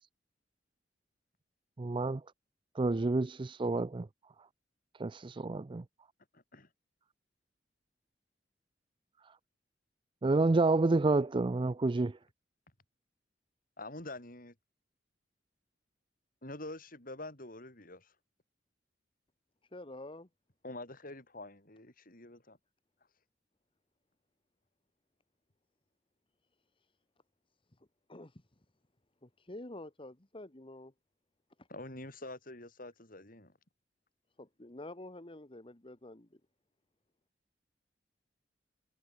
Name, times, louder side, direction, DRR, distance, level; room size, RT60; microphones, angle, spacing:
voice 1, 1.8-2.2 2.8-4.1 5.0-5.8 10.2-12.1, right 3 dB, 30° right, 0.4 m, -29 dB
voice 2, 6.3-6.7 13.8-14.5 16.4-18.1 20.6-22.6 31.7-33.5, left 2 dB, 50° left, 6.7 m, -46 dB
voice 3, 19.7-20.3 26.8-26.9 28.1-28.4 29.2-30.9 31.6-31.7 34.4-36.4, left 1 dB, 30° left, 1.7 m, -48 dB
head